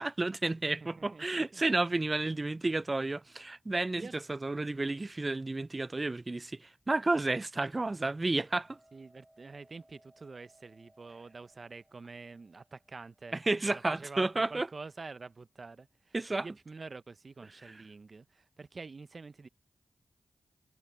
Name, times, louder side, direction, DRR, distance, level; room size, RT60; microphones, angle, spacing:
voice 1, 0.0-8.8 13.3-14.7 16.1-16.5 17.7-17.8, right 2 dB, 35° right, 0.4 m, -31 dB
voice 2, 0.8-1.6 4.0-4.1 8.9-19.5, right 4 dB, 55° right, 0.8 m, -47 dB
Hammer, 8.4-14.6, right 1 dB, 15° right, 3.6 m, -66 dB
cardioid pair, 45°, 0 cm